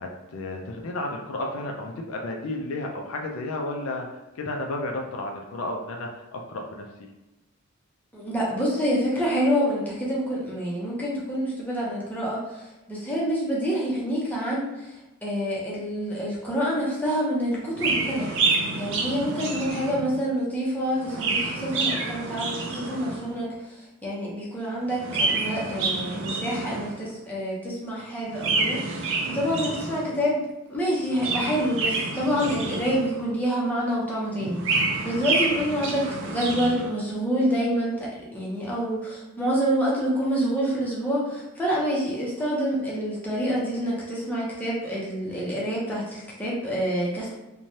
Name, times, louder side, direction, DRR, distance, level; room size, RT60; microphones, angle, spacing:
voice 1, 0.0-4.1 4.4-6.9, left 2 dB, 65° left, 1 dB, 0.4 m, -32 dB
voice 2, 8.1-15.0 15.2-18.3 18.8-30.4 30.7-34.8 35.0-47.3, equal, 10° left, -6 dB, 0.6 m, -27 dB
Chirp tweet, 17.7-20.2 20.9-23.3 24.9-27.1 28.3-30.2 31.0-33.3 34.3-36.9, right 3 dB, 60° right, 0.4 m, -28 dB
3.1 x 2.2 x 2.6 m, 1.0 s
head